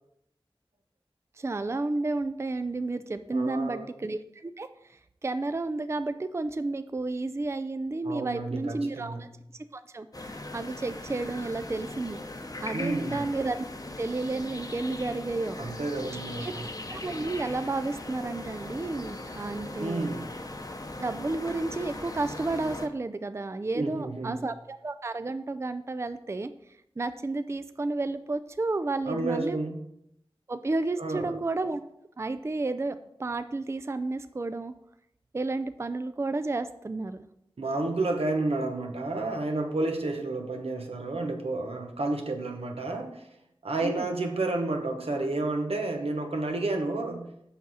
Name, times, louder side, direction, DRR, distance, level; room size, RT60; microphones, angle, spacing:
voice 1, 1.4-9.3 9.7-12.2 12.6-13.6 14.0-15.6 16.4-16.5 16.9-20.1 21.0-29.6 30.5-31.8 32.2-34.7 35.3-37.3 43.8-44.1, right 2 dB, 30° right, 11 dB, 0.3 m, -32 dB
voice 2, 3.3-3.9 8.0-9.3 12.7-13.3 15.6-16.7 19.8-20.3 23.7-24.4 29.1-29.8 31.0-31.3 37.6-43.3 43.6-47.3, right 2 dB, 90° right, 3 dB, 1.0 m, -31 dB
sound 1, 10.1-22.9, left 2 dB, 40° left, 0.8 m, -39 dB
7.2 x 6.0 x 4.1 m, 0.79 s
wide cardioid pair, 65°, 10 cm